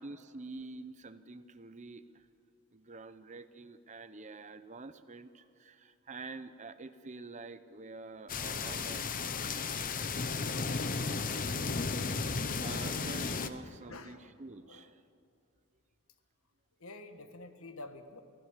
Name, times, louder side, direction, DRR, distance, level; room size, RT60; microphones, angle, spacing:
voice 1, 0.0-2.3 2.7-9.0 12.6-15.0, right 3 dB, 30° right, 12 dB, 0.7 m, -47 dB
sound 1, 8.3-13.5, left 4 dB, 40° left, 0.8 m, -34 dB
voice 2, 13.9-14.3 14.6-14.9 16.8-18.2, left 2 dB, 70° left, 8 dB, 1.5 m, -48 dB
23.5 x 16.0 x 7.4 m, 2.3 s
head